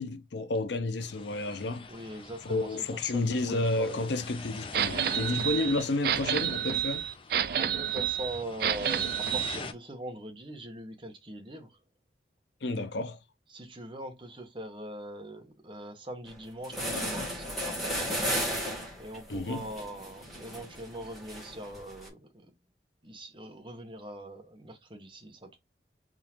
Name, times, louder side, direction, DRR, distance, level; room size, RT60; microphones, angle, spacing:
voice 1, 0.0-1.9 2.4-7.1 12.6-13.2 19.3-19.6, left 2 dB, 80° left, 0.7 m, -31 dB
sound 1, 1.0-9.7, left 4 dB, 30° left, 0.5 m, -45 dB
voice 2, 1.9-4.1 7.6-11.8 13.5-18.3 19.0-22.5 23.0-25.6, right 1 dB, 30° right, 1.1 m, -42 dB
sound 2, 4.7-9.6, right 9 dB, 60° right, 0.4 m, -29 dB
sound 3, 16.3-16.4 16.6-22.1, equal, ahead, 1.9 m, -35 dB
3.7 x 3.6 x 3.0 m
head